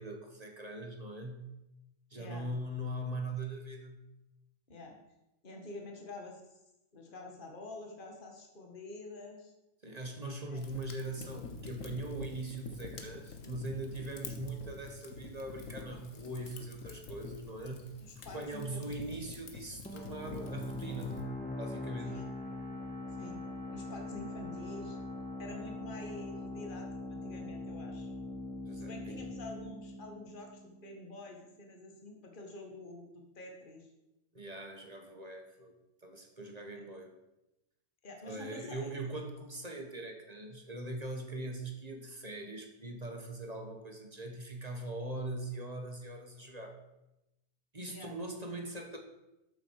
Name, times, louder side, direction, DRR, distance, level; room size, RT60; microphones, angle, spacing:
voice 1, 0.0-1.5 2.1-4.1 9.8-21.3 21.6-22.2 28.7-29.2 34.3-35.7 36.0-37.1 38.2-46.8 47.7-49.0, right 1 dB, 30° right, 3 dB, 1.6 m, -41 dB
voice 2, 2.1-2.5 4.7-5.0 5.4-6.6 6.9-9.5 10.5-10.6 18.0-19.0 22.0-22.3 23.1-23.4 23.7-25.0 25.4-28.1 28.8-33.9 38.0-38.9 47.9-48.1 48.4-48.6, left 2 dB, 40° left, 2 dB, 1.9 m, -47 dB
Fire, 10.6-21.2, left 4 dB, 70° left, 1.6 m, -47 dB
sound 1, 19.9-31.2, left 1 dB, 5° left, 1.4 m, -42 dB
13.5 x 7.7 x 4.8 m, 0.93 s
omnidirectional pair, 1.4 m